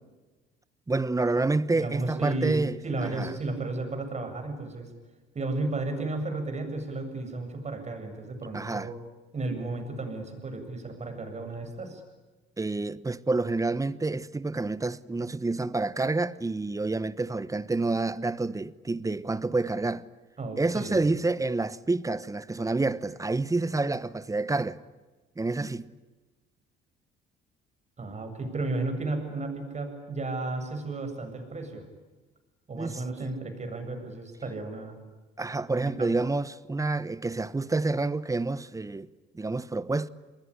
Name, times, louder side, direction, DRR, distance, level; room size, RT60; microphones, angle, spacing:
voice 1, 0.9-3.3 8.5-8.9 12.6-20.1 20.6-24.8 25.4-25.9 32.8-33.0 35.4-39.1 39.3-40.1, right 3 dB, 15° right, 1.1 m, -28 dB
voice 2, 1.7-4.9 5.3-8.9 9.3-12.0 20.4-21.0 28.0-31.8 32.7-35.0 35.7-36.1, right 2 dB, 35° right, 7.8 m, -33 dB
28.5 x 20.5 x 10.0 m
supercardioid pair, 90°, 21 cm